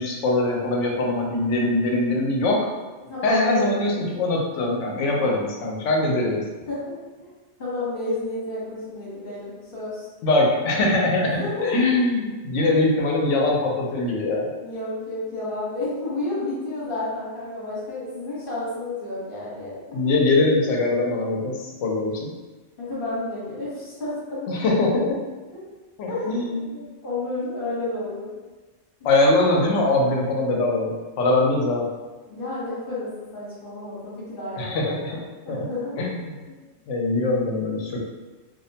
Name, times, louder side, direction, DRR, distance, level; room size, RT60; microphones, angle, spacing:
voice 1, 0.0-2.7 3.2-6.4 10.2-14.5 19.9-22.3 24.5-25.2 26.0-26.7 29.0-31.9 34.6-35.2 35.5-35.6 36.0-36.3 36.9-38.0, left 2 dB, 85° left, -1 dB, 0.9 m, -22 dB
voice 2, 3.0-3.6 6.7-6.9 7.6-10.1 11.4-12.0 14.6-19.8 22.8-24.8 26.1-28.3 32.3-36.0 36.5-36.6, left 2 dB, 50° left, -8 dB, 1.1 m, -31 dB
2.5 x 2.1 x 2.7 m, 1.2 s
omnidirectional pair, 1.2 m